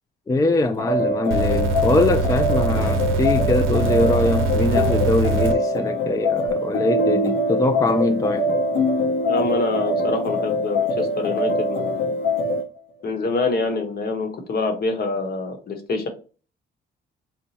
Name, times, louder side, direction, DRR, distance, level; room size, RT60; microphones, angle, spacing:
voice 1, 0.3-8.6, left 2 dB, 15° left, 0.4 m, -22 dB
sound 1, 0.8-12.7, left 1 dB, 75° left, 1.0 m, -23 dB
sound 2, 1.3-5.5 6.5-6.6, right 3 dB, 90° right, 0.7 m, -23 dB
voice 2, 9.3-12.0 13.0-16.1, left 3 dB, 50° left, 1.1 m, -25 dB
4.4 x 2.1 x 4.1 m
cardioid pair, 90°, 20 cm